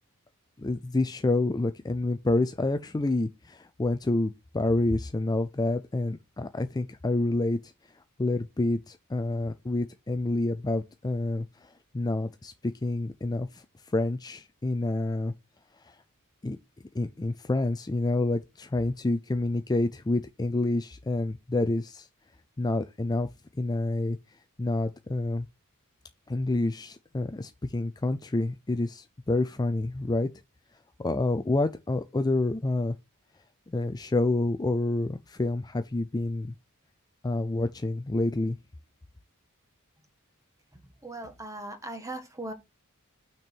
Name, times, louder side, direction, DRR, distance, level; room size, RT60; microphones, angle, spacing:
voice 1, 0.6-15.3 15.8-16.0 16.4-16.6 16.9-22.1 22.6-23.3 23.5-24.2 24.6-25.5 26.3-30.3 31.0-33.0 33.7-36.5 37.2-38.6, left 2 dB, 20° left, 0.4 m, -28 dB
voice 2, 40.7-42.5, right 2 dB, 15° right, 1.4 m, -39 dB
6.2 x 4.4 x 6.2 m
head